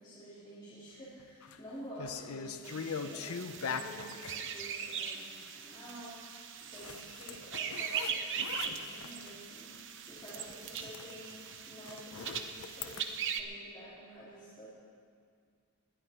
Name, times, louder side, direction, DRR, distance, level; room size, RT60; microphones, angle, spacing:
voice 1, 0.0-14.7, right 1 dB, 20° left, -12 dB, 3.2 m, -50 dB
sound 1, 1.2-1.6 2.0-4.4 6.7-9.4 9.7-9.9 10.2-13.0, left 6 dB, 80° left, 0.6 m, -42 dB
sound 2, 2.6-13.4, right 7 dB, 60° right, 0.8 m, -40 dB
20.0 x 11.5 x 4.5 m, 2.2 s
head